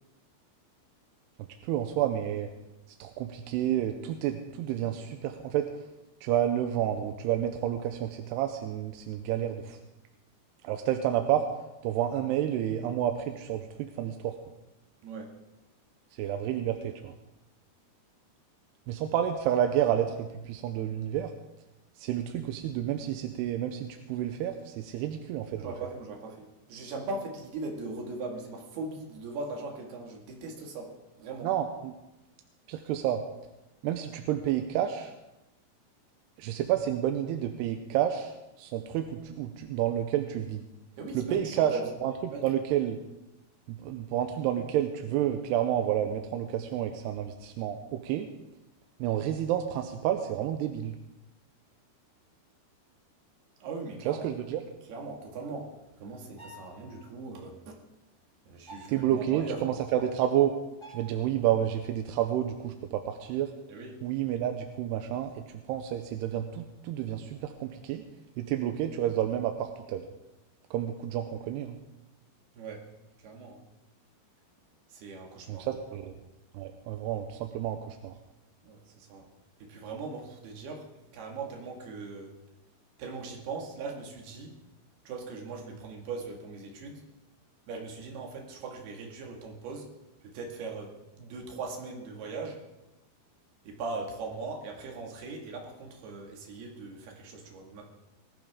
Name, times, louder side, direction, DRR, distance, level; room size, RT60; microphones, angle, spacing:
voice 1, 1.6-2.5 3.0-5.7 6.2-9.8 10.6-11.4 11.8-14.4 16.2-17.1 18.9-21.3 22.0-25.7 31.4-31.9 32.7-33.2 33.8-35.1 36.4-38.3 38.6-40.6 41.1-41.7 42.0-43.0 43.7-48.3 49.0-51.0 54.1-54.6 58.9-60.6 60.9-63.5 64.0-65.3 65.7-68.0 68.4-70.1 70.7-71.8 75.5-76.1 76.5-78.1, right 11 dB, 85° right, 6 dB, 2.8 m, -30 dB
voice 2, 15.0-15.3 25.6-31.5 41.0-41.9 42.3-42.4 53.6-54.3 54.9-57.8 58.5-59.8 63.7-64.0 72.6-72.9 73.2-73.6 74.9-75.7 78.6-79.3 79.6-80.9 81.1-82.3 83.0-84.6 85.1-87.0 87.7-89.9 90.2-92.6 93.7-97.8, right 3 dB, 70° right, 0 dB, 4.1 m, -39 dB
sound 1, 56.4-57.0 58.7-59.0 60.8-61.3, right 1 dB, 10° left, 1.3 m, -48 dB
20.0 x 14.0 x 3.7 m, 0.96 s
omnidirectional pair, 4.7 m